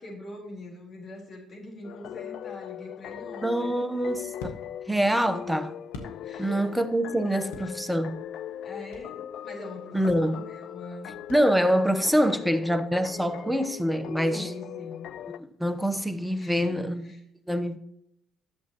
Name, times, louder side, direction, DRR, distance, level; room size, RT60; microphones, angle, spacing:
voice 1, 0.0-3.7 6.2-6.7 8.5-11.1 12.2-12.5 14.3-15.1 16.3-17.2, left 2 dB, 45° left, 3.9 m, -43 dB
sound 1, 1.8-15.4, left 10 dB, 60° left, 0.3 m, -40 dB
sound 2, 3.3-6.7 7.0-9.2 9.6-9.7 10.0-11.9, left 3 dB, 80° left, 1.2 m, -46 dB
voice 2, 3.4-4.5 4.9-5.7 6.4-8.3 9.9-10.4 11.3-14.5 15.4-17.1 17.5-17.8, equal, 5° right, 0.8 m, -25 dB
11.5 x 7.3 x 3.0 m
hypercardioid pair, 55°, 0 cm